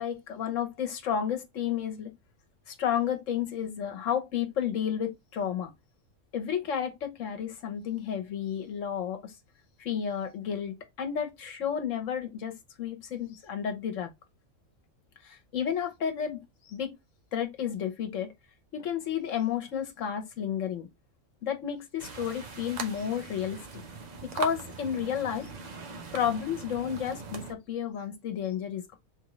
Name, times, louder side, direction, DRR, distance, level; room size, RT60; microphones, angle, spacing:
voice 1, 0.0-2.1 2.7-5.7 6.3-9.3 9.8-14.1 15.2-16.9 17.3-18.3 18.7-20.9 21.4-23.8 24.2-25.5 26.1-29.0, left 8 dB, 80° left, 1.3 m, -32 dB
sound 1, 22.0-27.5, right 4 dB, 40° right, 0.8 m, -40 dB
3.7 x 3.5 x 3.0 m
omnidirectional pair, 1.3 m